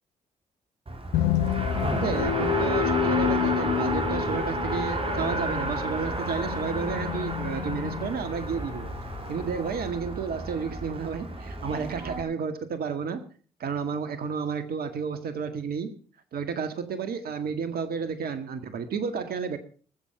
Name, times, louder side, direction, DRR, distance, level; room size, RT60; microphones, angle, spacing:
Race car auto racing, 0.9-12.2, right 2 dB, 35° right, 3.0 m, -31 dB
sound 1, 1.1-9.9, left 12 dB, 70° left, 0.8 m, -30 dB
voice 1, 1.9-8.9 9.3-13.2 13.6-15.9 16.3-19.6, right 6 dB, 60° right, 10 dB, 1.8 m, -31 dB
19.5 x 7.6 x 5.6 m, 0.42 s
hypercardioid pair, 45°, 18 cm